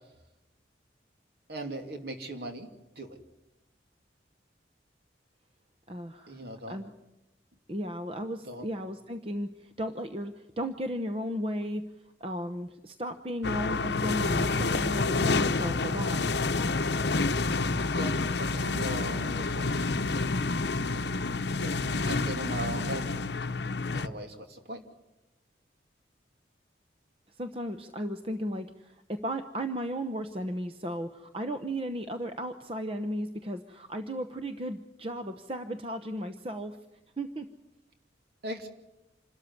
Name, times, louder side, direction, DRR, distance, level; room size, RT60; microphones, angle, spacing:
voice 1, 1.5-2.7 3.0-3.2 6.3-6.8 8.4-8.7 17.9-19.9 21.6-23.1 23.9-24.8 38.4-38.7, right 1 dB, 60° right, 5 dB, 2.8 m, -39 dB
voice 2, 5.9-6.4 6.7-6.9 7.7-11.9 12.2-16.2 27.4-36.8 37.2-37.5, equal, 30° right, 8 dB, 0.9 m, -35 dB
sound 1, 13.4-24.1, left 3 dB, 70° left, 0.8 m, -28 dB
27.0 x 13.0 x 9.7 m, 0.97 s
head